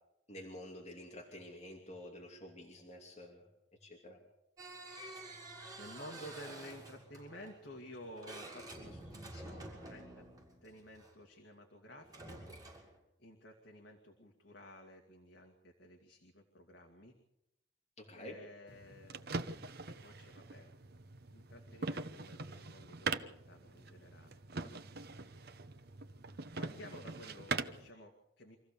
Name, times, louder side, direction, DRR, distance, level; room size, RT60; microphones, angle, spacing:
voice 1, 0.3-3.4 3.8-4.2 18.0-18.4, left 1 dB, 35° left, -1 dB, 2.8 m, -49 dB
Old Spanish House Doors Open and Close, 4.6-11.1 12.0-13.0, right 1 dB, 20° right, 6.7 m, -50 dB
voice 2, 5.8-10.3 10.6-12.4 13.2-17.2 18.1-19.2 19.9-20.7 21.3-24.7 25.1-25.4 26.6-28.6, equal, 70° left, 2 dB, 2.3 m, -53 dB
sound 1, 18.7-27.9, right 4 dB, 60° right, 1.0 m, -43 dB
26.0 x 15.0 x 6.9 m, 0.86 s
head